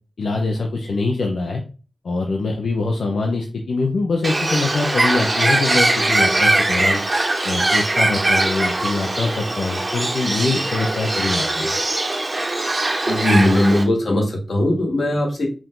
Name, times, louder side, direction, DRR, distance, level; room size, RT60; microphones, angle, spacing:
voice 1, 0.2-1.6 2.0-7.0 7.4-11.8, left 3 dB, 85° left, 1 dB, 0.6 m, -23 dB
Bird, 4.2-13.8, right 2 dB, 30° right, 0.7 m, -21 dB
voice 2, 13.1-15.5, left 1 dB, 65° left, -1 dB, 1.5 m, -19 dB
4.9 x 2.6 x 3.6 m, 0.36 s
wide cardioid pair, 135°, 0 cm